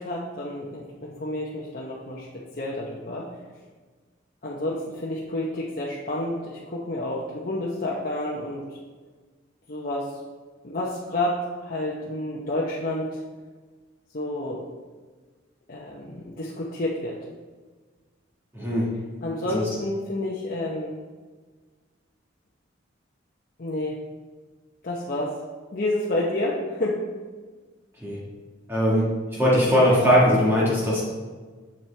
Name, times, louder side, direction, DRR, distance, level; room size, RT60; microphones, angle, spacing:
voice 1, 0.0-2.3 2.6-3.3 4.4-8.6 9.7-10.2 10.6-13.2 14.1-14.6 15.7-17.2 19.2-21.0 23.6-24.0 24.8-25.4 25.7-27.1, left 1 dB, 45° left, -4 dB, 0.8 m, -29 dB
voice 2, 18.5-18.9 19.5-19.7 28.0-28.2 28.7-31.0, equal, 10° right, -7 dB, 1.6 m, -20 dB
7.4 x 7.3 x 3.3 m, 1.4 s
head